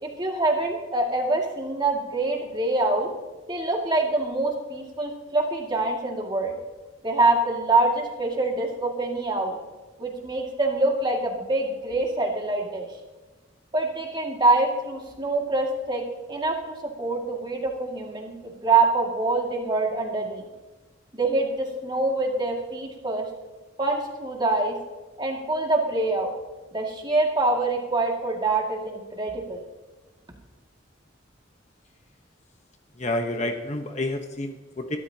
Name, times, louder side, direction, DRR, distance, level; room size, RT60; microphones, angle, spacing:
voice 1, 0.0-3.1 3.5-6.6 7.0-9.6 10.0-12.9 13.7-16.0 16.3-20.4 21.1-23.3 23.8-24.8 25.2-26.3 26.7-29.6, right 2 dB, 25° right, 0 dB, 2.1 m, -25 dB
voice 2, 33.0-35.0, left 1 dB, 35° left, 5 dB, 1.0 m, -29 dB
22.5 x 13.5 x 2.9 m, 1.2 s
head